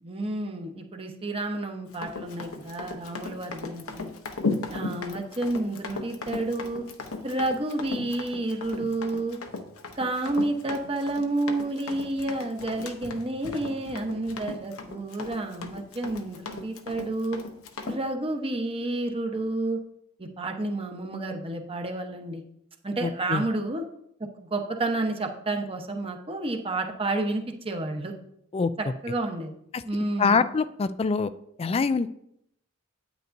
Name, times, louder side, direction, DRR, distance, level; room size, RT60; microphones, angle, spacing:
voice 1, 0.0-4.1 4.7-6.8 7.2-9.4 9.9-17.4 17.9-19.8 20.2-22.4 22.8-23.8 24.4-28.1 29.0-29.5 29.8-30.4, right 2 dB, 25° right, 4 dB, 0.9 m, -30 dB
Run, 1.9-18.0, left 3 dB, 85° left, 0.9 m, -36 dB
voice 2, 23.0-23.4 28.5-28.7 29.7-29.8 30.2-31.3 31.6-32.1, left 4 dB, 30° left, 13 dB, 0.3 m, -24 dB
9.3 x 9.1 x 2.6 m, 0.75 s
head